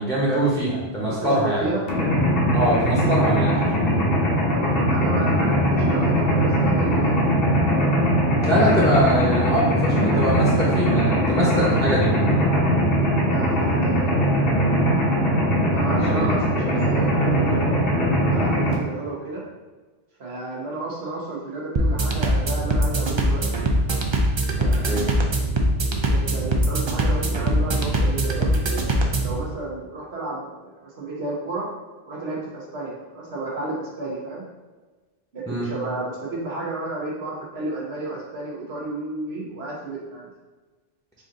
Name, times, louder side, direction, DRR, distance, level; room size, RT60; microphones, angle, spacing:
voice 1, 0.0-1.7 2.5-3.5 8.4-12.1 16.0-16.4 24.6-25.1 35.5-35.7, equal, 5° left, -7 dB, 0.7 m, -23 dB
voice 2, 1.1-1.8 4.5-7.2 13.0-14.3 15.7-17.8 18.2-19.5 20.2-23.4 24.6-25.2 25.9-28.8 29.2-31.7 32.1-34.4 35.3-40.3, right 2 dB, 80° right, -4 dB, 1.2 m, -32 dB
Mechanisms, 1.9-18.7, equal, 65° left, 1.1 m, -20 dB
sound 1, 21.8-29.4, right 1 dB, 45° right, 0.4 m, -22 dB
4.9 x 2.6 x 3.7 m, 1.3 s
omnidirectional pair, 1.1 m